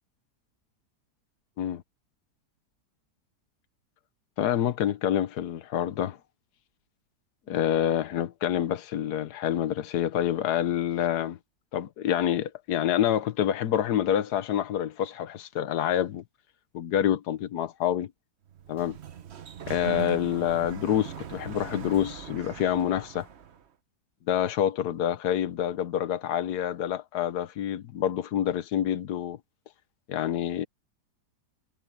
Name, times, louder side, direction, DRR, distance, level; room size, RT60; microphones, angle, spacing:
voice 1, 4.4-6.2 7.5-11.4 11.7-16.2 16.7-18.1 18.7-19.0 19.7-23.3 24.3-29.4 30.1-30.7, left 10 dB, 75° left, 1.5 m, -27 dB
Sliding door, 18.5-23.6, right 8 dB, 50° right, 1.0 m, -40 dB
omnidirectional pair, 1.8 m